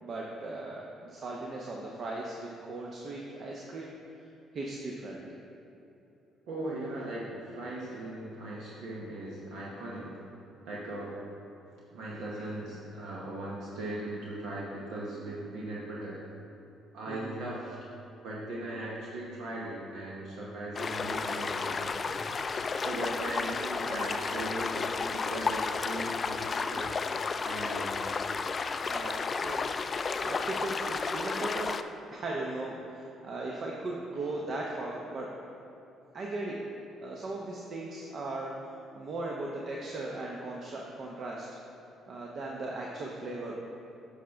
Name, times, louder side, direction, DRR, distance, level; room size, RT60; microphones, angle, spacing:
voice 1, 0.0-4.3 4.5-5.4 12.1-12.4 17.1-17.4 28.8-29.7 30.2-31.8 32.1-35.3 36.1-36.6 37.0-41.5 42.1-43.6, right 2 dB, 55° right, -2 dB, 0.8 m, -38 dB
voice 2, 6.5-10.2 10.6-11.2 11.7-16.2 16.9-17.8 18.2-26.9 27.4-28.3 34.2-34.4, right 1 dB, 80° right, -5 dB, 1.0 m, -39 dB
sound 1, 20.8-31.8, left 4 dB, 40° left, 0.3 m, -32 dB
8.3 x 5.7 x 3.5 m, 2.9 s
supercardioid pair, 65°, 0 cm